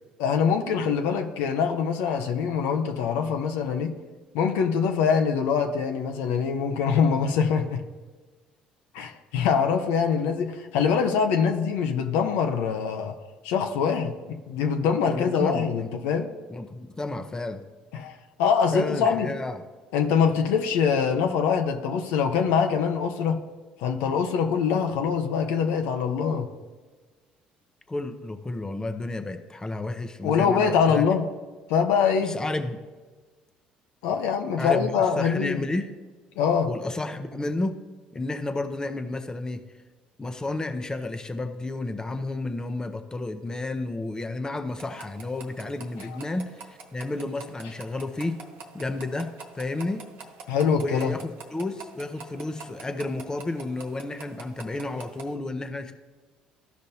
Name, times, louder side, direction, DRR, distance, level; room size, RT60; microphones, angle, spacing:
voice 1, 0.2-3.9 4.3-7.8 8.9-13.1 13.4-16.3 17.9-18.1 18.4-19.3 19.9-23.4 23.8-26.5 30.2-31.2 31.7-32.3 34.0-35.6 36.4-36.7 50.5-51.1, left 6 dB, 80° left, 5 dB, 0.8 m, -24 dB
voice 2, 15.1-15.9 16.5-17.6 18.7-19.6 27.9-31.1 32.2-32.8 34.6-35.9 36.7-37.8 38.1-39.6 40.2-48.4 48.7-50.0 50.7-55.9, left 2 dB, 20° left, 7 dB, 0.7 m, -31 dB
sound 1, 44.7-55.3, right 4 dB, 70° right, 1.2 m, -46 dB
13.5 x 5.2 x 2.8 m, 1.4 s
supercardioid pair, 75°, 4 cm